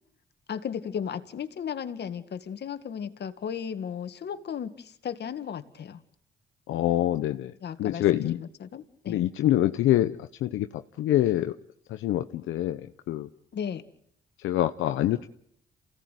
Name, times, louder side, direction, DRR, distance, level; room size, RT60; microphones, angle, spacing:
voice 1, 0.5-6.0 7.6-9.2 13.5-13.8, left 8 dB, 55° left, 10 dB, 2.1 m, -35 dB
voice 2, 6.7-7.5 7.8-8.4 9.1-11.5 11.9-13.3 14.4-15.3, left 13 dB, 85° left, 8 dB, 1.0 m, -25 dB
28.5 x 17.0 x 9.3 m, 0.70 s
cardioid pair, 90°, 20 cm